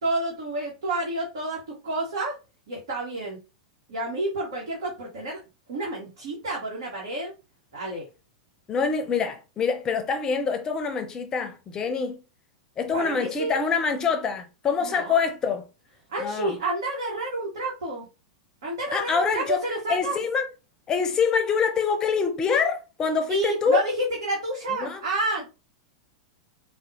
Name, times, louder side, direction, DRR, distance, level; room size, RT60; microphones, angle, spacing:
voice 1, 0.0-1.6 1.8-2.3 2.7-3.4 3.9-5.4 5.7-7.3 7.7-8.0 12.9-13.6 14.8-15.2 16.1-18.1 18.6-20.2 23.3-25.5, right 2 dB, 65° right, 1.2 m, -29 dB
voice 2, 8.7-12.2 12.8-15.6 16.2-16.6 18.9-20.5 20.9-23.8 24.7-25.0, left 5 dB, 25° left, 0.6 m, -25 dB
4.0 x 2.2 x 2.7 m
figure-of-eight pair, 95°, 3 cm